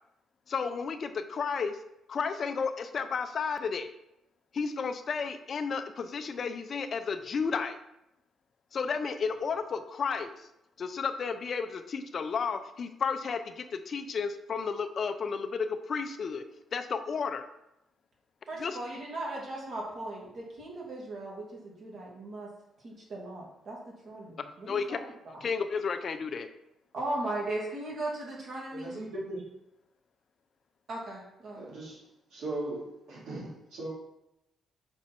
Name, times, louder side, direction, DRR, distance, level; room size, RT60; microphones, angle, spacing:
voice 1, 0.5-1.7 2.1-3.9 4.5-7.8 8.7-10.3 10.8-16.4 16.7-17.4 18.6-18.8 24.7-25.0 25.4-26.5, left 5 dB, 50° left, 9 dB, 0.5 m, -32 dB
voice 2, 18.5-22.5 22.8-23.8 24.0-25.0 25.3-25.5 26.9-29.0 30.9-31.7, right 2 dB, 55° right, -4 dB, 2.6 m, -37 dB
voice 3, 28.7-29.4 31.5-32.0 32.3-33.9, right 2 dB, 80° right, -5 dB, 2.4 m, -38 dB
6.1 x 4.4 x 4.3 m, 0.84 s
cardioid pair, 90°, 0 cm